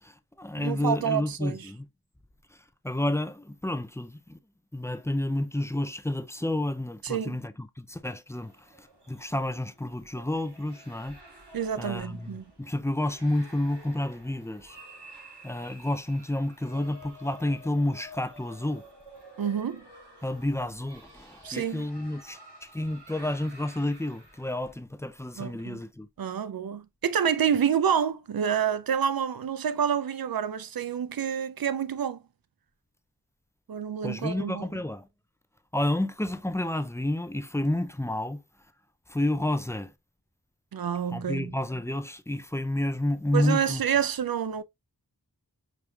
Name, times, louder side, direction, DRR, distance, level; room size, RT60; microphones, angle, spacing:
voice 1, 0.0-1.9 2.5-2.6 2.8-4.4 4.7-11.2 11.8-14.8 15.4-18.9 20.2-26.1 34.0-35.1 35.7-38.4 39.1-39.9 41.1-43.8, left 1 dB, 5° left, 0.4 m, -30 dB
voice 2, 0.6-1.6 7.0-7.4 11.5-12.4 19.4-19.9 21.4-21.9 25.4-25.8 26.2-32.2 33.7-34.7 40.7-41.5 43.3-44.6, right 8 dB, 60° right, 0.5 m, -28 dB
sound 1, 8.3-24.8, equal, 80° right, 1.9 m, -51 dB
5.1 x 3.1 x 2.3 m
wide cardioid pair, 50°, 41 cm